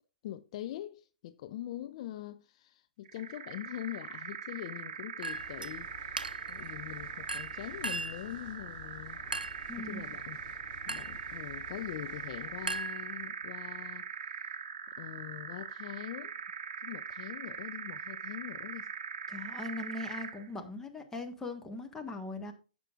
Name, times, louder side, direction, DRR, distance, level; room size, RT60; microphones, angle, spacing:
voice 1, 0.2-9.2 9.8-10.4 10.9-14.5 15.0-16.4 16.8-18.9, left 13 dB, 45° left, 0.5 m, -43 dB
sound 1, 3.1-20.5, right 7 dB, 55° right, 1.0 m, -42 dB
Chink clink, 5.2-5.7 6.2-6.6 7.3-8.3 9.3-9.7 10.9-11.2 12.7-13.5, right 3 dB, 85° right, 0.5 m, -38 dB
sound 2, 5.3-12.8, left 6 dB, 25° left, 2.4 m, -53 dB
voice 2, 9.7-10.0 19.3-22.5, left 2 dB, 10° left, 1.5 m, -40 dB
15.5 x 6.0 x 2.5 m
figure-of-eight pair, 120°, 5 cm